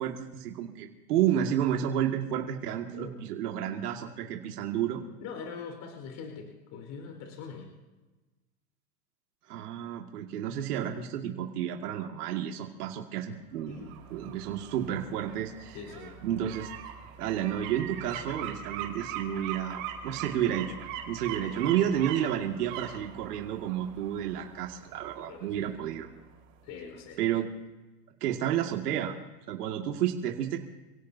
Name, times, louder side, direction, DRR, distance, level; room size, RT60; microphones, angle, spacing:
voice 1, 0.0-5.0 9.5-13.8 14.1-15.8 16.2-16.7 17.2-20.7 21.1-26.1 27.2-27.5 28.2-29.1 29.5-30.6, right 10 dB, 70° right, 1 dB, 2.4 m, -31 dB
voice 2, 5.2-7.7 13.7-14.0 15.7-16.2 25.3-25.7 26.6-27.2, left 5 dB, 40° left, 2 dB, 4.7 m, -42 dB
sound 1, 13.6-26.4 26.8-26.9, right 9 dB, 55° right, 4.7 m, -42 dB
28.5 x 17.0 x 2.8 m, 1.2 s
supercardioid pair, 140°, 47 cm